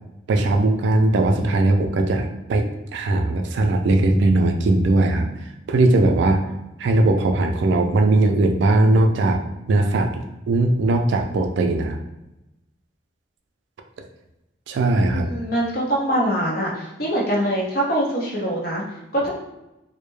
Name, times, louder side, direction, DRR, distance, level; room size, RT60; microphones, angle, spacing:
voice 1, 0.3-2.7 2.9-5.3 5.7-6.4 6.8-9.4 9.7-12.0 14.7-15.3, right 2 dB, 70° right, 4 dB, 0.3 m, -19 dB
voice 2, 15.1-18.8 19.1-19.3, right 1 dB, 50° left, -3 dB, 0.6 m, -23 dB
2.1 x 2.0 x 3.0 m, 0.95 s
head